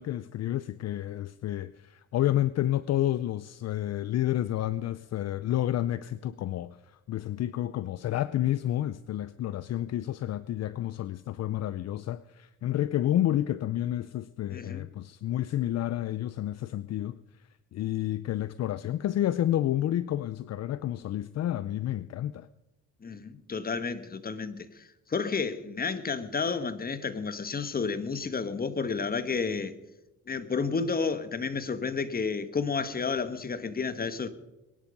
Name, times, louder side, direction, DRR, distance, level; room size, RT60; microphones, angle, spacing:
voice 1, 0.0-17.2 17.7-22.5, left 12 dB, 60° left, 0.6 m, -30 dB
voice 2, 14.5-14.9 23.0-29.7 30.3-34.3, left 5 dB, 30° left, 1.3 m, -31 dB
22.0 x 11.0 x 5.3 m
cardioid pair, 90°, 30 cm